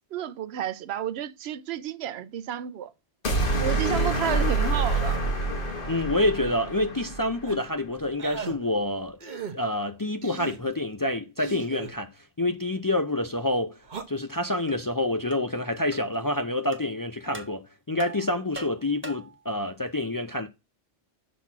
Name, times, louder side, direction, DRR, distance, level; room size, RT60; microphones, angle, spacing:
voice 1, 0.1-2.9 3.6-5.2, right 11 dB, 80° right, 0.8 m, -31 dB
sound 1, 3.2-7.5, right 2 dB, 55° left, 1.7 m, -27 dB
voice 2, 5.9-9.2 9.5-12.1 12.4-13.8 14.1-20.5, left 1 dB, 30° left, 0.4 m, -27 dB
sound 2, 7.5-7.7 8.2-8.6 9.2-9.5 10.2-10.6 11.4-11.9 13.8-14.0, right 6 dB, 50° right, 1.0 m, -37 dB
sound 3, 14.7-14.8 15.3-15.5 15.9-16.1 16.7-16.8 17.3-17.6 18.0-19.4, right 2 dB, 10° right, 0.9 m, -41 dB
5.9 x 4.0 x 5.9 m
omnidirectional pair, 1.1 m